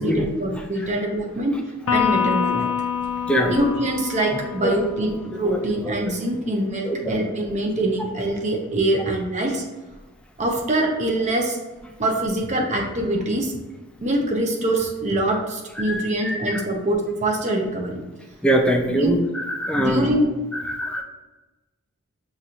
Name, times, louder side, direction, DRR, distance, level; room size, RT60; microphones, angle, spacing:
voice 1, 0.0-1.5 1.9-2.7 3.5-9.6 10.4-11.6 12.0-13.6 14.0-18.0 18.9-19.1 19.7-20.3, right 1 dB, 35° right, 1 dB, 0.7 m, -24 dB
Electric guitar, 1.9-5.4, left 7 dB, 80° left, 0.4 m, -26 dB
voice 2, 3.3-3.6 4.6-4.8 5.4-5.6 5.8-5.9 6.9-7.2 15.8-16.6 18.4-20.2 20.5-21.0, equal, 5° left, 2 dB, 0.3 m, -23 dB
5.9 x 2.5 x 2.8 m, 1.1 s
head